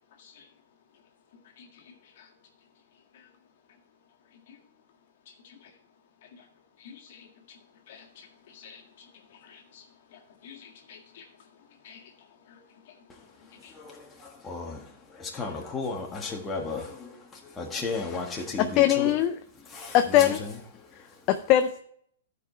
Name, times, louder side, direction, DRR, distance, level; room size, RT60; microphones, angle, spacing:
voice 1, 6.8-7.3 7.9-8.3 8.5-8.8 9.5-9.8 10.1-11.2 11.8-12.0 12.5-12.6 13.6-13.7, left 7 dB, 55° left, 2 dB, 1.7 m, -49 dB
voice 2, 13.8-14.8 15.2-17.1 17.6-19.1 19.7-20.3, left 3 dB, 15° left, 0 dB, 1.5 m, -34 dB
voice 3, 18.6-19.4 19.9-20.4 21.3-21.8, left 12 dB, 35° left, 7 dB, 0.5 m, -21 dB
12.5 x 4.9 x 4.4 m, 0.65 s
hypercardioid pair, 140°, 0 cm